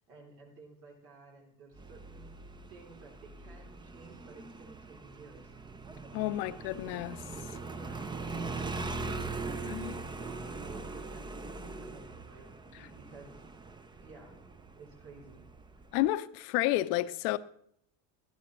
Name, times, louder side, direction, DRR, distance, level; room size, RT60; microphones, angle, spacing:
voice 1, 0.1-2.3 2.7-5.5 6.2-6.4 7.6-12.5 12.8-13.4 14.0-14.4 14.7-15.4, right 3 dB, 75° right, 3.4 m, -54 dB
Motorcycle, 1.8-16.1, right 3 dB, 10° right, 0.4 m, -41 dB
voice 2, 6.1-7.2 9.6-10.0 15.9-17.4, left 16 dB, 70° left, 0.7 m, -31 dB
12.5 x 11.0 x 3.1 m
hypercardioid pair, 85°, 49 cm